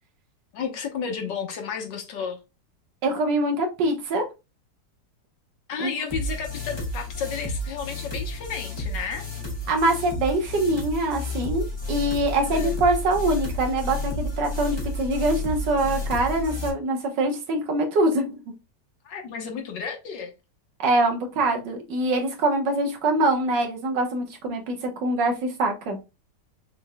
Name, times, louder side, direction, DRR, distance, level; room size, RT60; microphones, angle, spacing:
voice 1, 0.5-2.4 5.7-9.3 12.4-12.7 19.1-20.3, left 6 dB, 90° left, 1.7 m, -32 dB
voice 2, 3.0-4.2 5.8-5.9 9.7-18.4 20.8-26.0, right 2 dB, 90° right, 1.8 m, -24 dB
sound 1, 6.1-16.7, left 2 dB, 15° left, 1.2 m, -31 dB
6.0 x 3.7 x 2.3 m
omnidirectional pair, 1.9 m